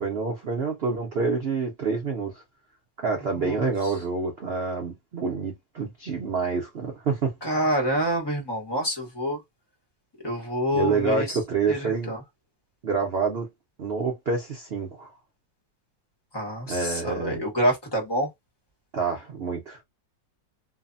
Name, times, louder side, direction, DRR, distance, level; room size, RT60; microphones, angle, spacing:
voice 1, 0.0-2.4 3.0-7.3 10.7-12.1 12.8-13.5 13.8-15.1 16.7-17.4 18.9-19.8, right 4 dB, 90° right, 0.5 m, -27 dB
voice 2, 3.4-3.9 7.4-9.4 10.2-11.4 11.7-12.2 16.3-18.3, equal, 20° left, 0.7 m, -27 dB
3.1 x 2.0 x 2.5 m
omnidirectional pair, 2.0 m